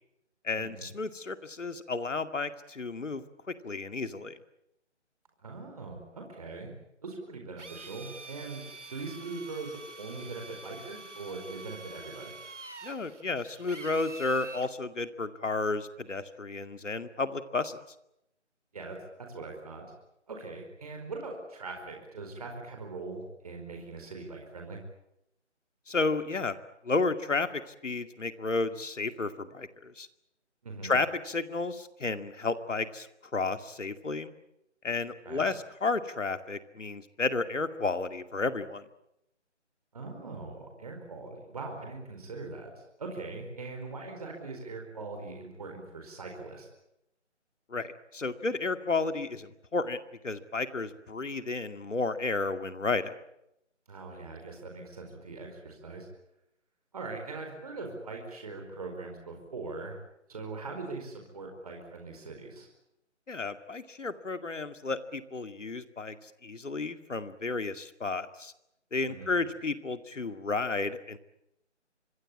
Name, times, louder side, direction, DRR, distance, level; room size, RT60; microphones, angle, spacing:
voice 1, 0.4-4.4 12.8-17.8 25.9-26.6 26.8-30.1 30.8-33.1 33.3-34.3 34.8-38.8 47.7-50.0 50.2-53.1 63.3-68.5 68.9-71.2, left 3 dB, 85° left, 9 dB, 2.3 m, -32 dB
voice 2, 5.4-6.7 7.0-12.3 18.7-19.9 20.3-24.8 30.6-31.0 35.2-35.5 39.9-46.7 53.9-56.1 56.9-60.0 60.3-62.7 69.1-69.4, right 3 dB, 30° right, 2 dB, 4.7 m, -41 dB
Drill, 7.6-14.7, right 2 dB, 75° right, 2.7 m, -46 dB
25.5 x 21.0 x 8.6 m, 0.82 s
figure-of-eight pair, 175°, 36 cm